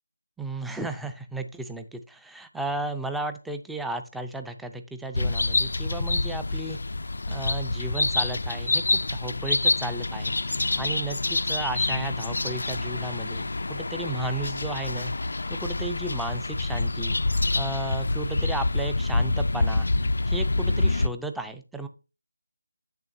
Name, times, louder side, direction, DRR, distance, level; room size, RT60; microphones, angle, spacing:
voice 1, 0.4-6.8 7.3-10.3 10.8-15.1 15.5-17.2 17.6-19.9 20.3-21.9, right 2 dB, ahead, 8 dB, 0.4 m, -34 dB
sound 1, 5.1-21.1, left 2 dB, 65° left, 0.4 m, -27 dB
8.2 x 6.8 x 2.6 m, 0.30 s
figure-of-eight pair, 165°, 0 cm